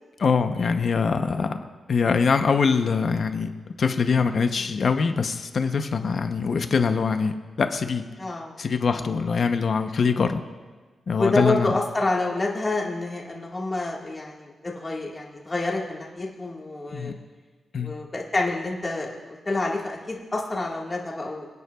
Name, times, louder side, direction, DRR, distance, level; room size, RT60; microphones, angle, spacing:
voice 1, 0.2-1.6 1.9-3.5 3.8-8.0 8.6-10.4 11.1-11.8 16.9-17.1 17.7-18.0, left 5 dB, 50° left, 8 dB, 0.7 m, -23 dB
voice 2, 8.2-8.6 8.9-9.0 11.2-17.1 17.8-21.5, left 2 dB, 20° left, -2 dB, 1.6 m, -28 dB
26.5 x 9.5 x 2.3 m, 1.4 s
wide cardioid pair, 150°, 0 cm